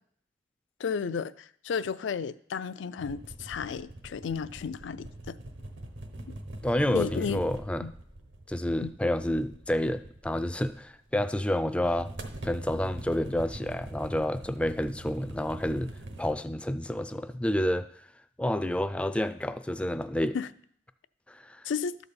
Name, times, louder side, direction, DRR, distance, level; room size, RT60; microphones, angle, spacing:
voice 1, 0.8-5.4 6.9-7.4 7.8-7.9 8.8-8.9 20.3-20.5 21.6-22.0, left 6 dB, 85° left, 15 dB, 0.4 m, -33 dB
sound 1, 3.0-11.1 11.7-16.3, right 1 dB, 75° right, 1.0 m, -44 dB
voice 2, 6.6-7.9 8.5-12.1 12.4-15.9 16.2-17.9 18.4-20.4 21.3-21.6, left 1 dB, 5° left, 11 dB, 0.3 m, -29 dB
11.5 x 4.1 x 6.9 m, 0.63 s
head